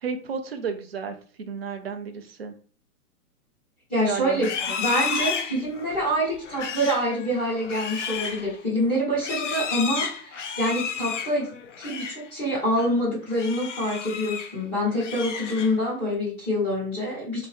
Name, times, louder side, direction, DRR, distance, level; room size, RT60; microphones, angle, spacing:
voice 1, 0.0-2.5 4.0-4.8, right 5 dB, 45° right, 6 dB, 0.4 m, -33 dB
voice 2, 3.9-4.5 4.8-17.5, equal, 15° left, -11 dB, 1.6 m, -26 dB
Livestock farm animals working animals, 4.3-12.3 12.6-12.9 13.3-14.6 14.9-16.0, left 6 dB, 55° left, 0.5 m, -32 dB
2.7 x 2.6 x 3.4 m, 0.40 s
hypercardioid pair, 175°, 45 cm